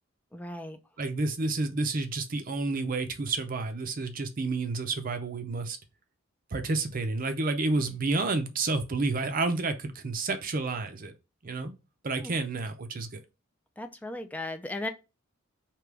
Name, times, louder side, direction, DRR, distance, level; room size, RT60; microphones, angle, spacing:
voice 1, 0.3-0.8 12.2-12.3 13.8-14.9, left 2 dB, 5° left, 0.4 m, -36 dB
voice 2, 1.0-5.8 6.5-11.1 11.4-11.7 12.0-13.2, right 3 dB, 40° right, 0.5 m, -30 dB
3.4 x 2.9 x 4.6 m
head